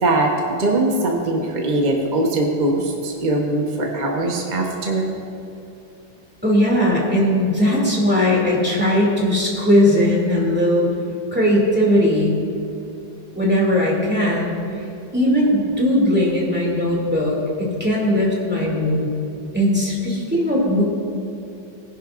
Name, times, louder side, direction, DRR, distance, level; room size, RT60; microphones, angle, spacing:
voice 1, 0.0-5.1, right 2 dB, 30° right, -1 dB, 0.9 m, -21 dB
voice 2, 6.4-10.9 11.3-12.3 13.3-14.5 15.1-19.1 19.5-20.8, left 1 dB, 5° right, -4 dB, 2.4 m, -18 dB
18.0 x 10.5 x 2.5 m, 2.6 s
omnidirectional pair, 2.1 m